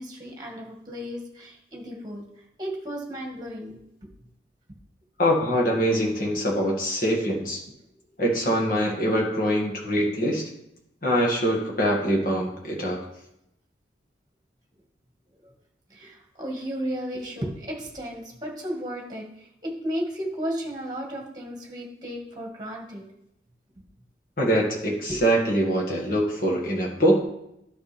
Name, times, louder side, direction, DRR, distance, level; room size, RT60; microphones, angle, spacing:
voice 1, 0.0-2.2 2.6-3.8 15.4-15.5 15.9-23.0 25.1-25.2, equal, 20° right, 0 dB, 1.7 m, -34 dB
voice 2, 5.2-7.6 8.2-10.4 11.0-13.0 24.4-27.2, equal, 50° left, -2 dB, 1.9 m, -23 dB
11.5 x 6.1 x 3.4 m, 0.81 s
head